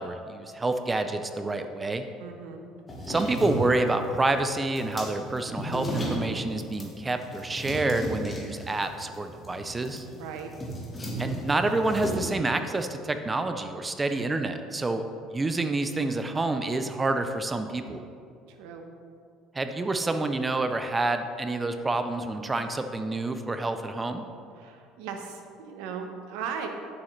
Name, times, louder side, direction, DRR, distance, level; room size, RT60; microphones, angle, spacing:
voice 1, 0.0-2.1 3.1-10.1 11.2-15.0 15.3-18.0 19.5-24.2, right 2 dB, 15° right, 8 dB, 0.4 m, -28 dB
voice 2, 2.2-2.6 10.1-10.5 18.5-18.9 24.6-26.7, right 7 dB, 85° right, 4 dB, 0.9 m, -37 dB
sound 1, 2.9-12.2, equal, 15° left, 1.3 m, -35 dB
8.8 x 7.1 x 3.2 m, 2.4 s
cardioid pair, 150°, 0 cm